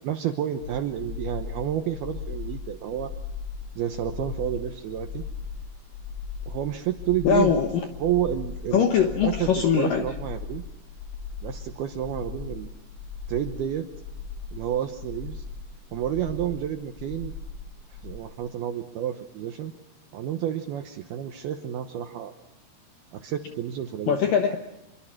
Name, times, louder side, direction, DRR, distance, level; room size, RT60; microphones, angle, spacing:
voice 1, 0.0-3.1 3.8-5.2 6.5-7.5 8.0-10.6 11.4-12.7 13.3-13.9 14.5-15.4 15.9-17.3 18.0-19.7 20.1-22.3 23.1-24.2, right 11 dB, 80° right, 6 dB, 2.3 m, -30 dB
sound 1, 0.6-18.2, left 5 dB, 55° left, 3.8 m, -38 dB
voice 2, 7.2-7.8 8.7-10.1 24.1-24.6, left 7 dB, 75° left, 5 dB, 2.1 m, -22 dB
26.5 x 23.0 x 6.0 m, 0.89 s
omnidirectional pair, 5.6 m